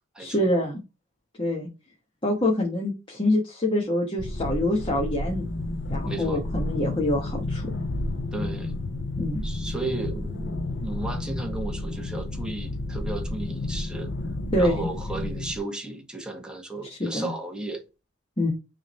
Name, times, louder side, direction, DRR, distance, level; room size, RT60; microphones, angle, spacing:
voice 1, 0.2-0.8 1.4-1.7 2.2-5.5 5.9-7.7 9.2-9.4 14.5-14.9 16.9-17.3 18.4-18.5, left 1 dB, 25° left, 1.3 m, -25 dB
sound 1, 4.2-15.6, left 2 dB, 60° left, 0.7 m, -31 dB
voice 2, 6.0-6.5 8.3-8.7 9.4-14.1 14.6-17.8, right 2 dB, 5° right, 1.6 m, -34 dB
6.3 x 3.6 x 4.3 m
head